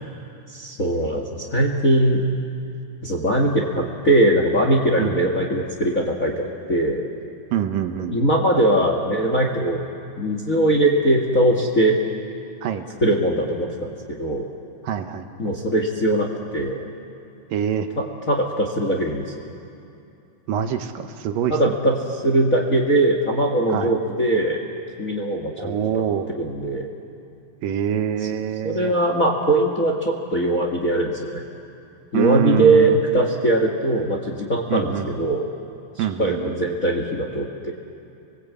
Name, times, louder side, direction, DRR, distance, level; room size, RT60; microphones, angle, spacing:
voice 1, 0.5-2.2 3.0-7.0 8.1-9.8 10.2-12.0 13.0-14.5 15.4-16.8 18.3-19.2 21.5-21.9 22.2-24.6 25.0-25.7 26.4-26.9 28.6-31.4 32.1-35.5 35.9-37.7, right 1 dB, 35° left, 1 dB, 1.3 m, -21 dB
voice 2, 7.5-8.2 12.6-12.8 14.8-15.2 17.5-17.9 20.5-21.7 23.7-23.9 25.6-26.3 27.6-28.9 32.1-33.0 34.7-35.1 36.0-36.6, right 9 dB, 75° right, 7 dB, 2.6 m, -25 dB
29.0 x 22.0 x 8.5 m, 2.7 s
omnidirectional pair, 4.1 m